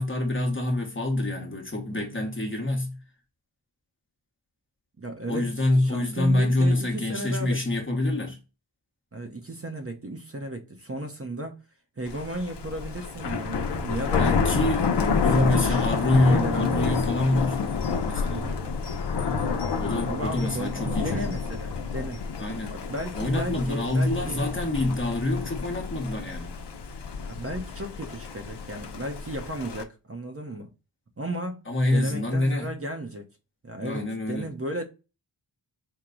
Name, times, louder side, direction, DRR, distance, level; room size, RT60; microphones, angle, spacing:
voice 1, 0.0-3.0 5.3-8.4 14.2-14.8 15.2-17.6 18.1-18.5 19.8-21.3 22.4-22.8 23.1-26.5 31.7-32.7 33.8-34.6, left 1 dB, 25° left, 1.1 m, -26 dB
voice 2, 5.0-7.6 9.1-11.6 12.0-14.6 15.3-15.9 16.3-17.0 18.3-18.6 20.1-22.2 22.7-24.4 27.2-30.7 31.2-31.6 31.9-33.3 33.6-34.8, right 1 dB, 30° right, 0.8 m, -34 dB
Thunder, 12.1-29.8, left 5 dB, 65° left, 0.7 m, -29 dB
4.6 x 2.2 x 3.8 m
wide cardioid pair, 80°, 44 cm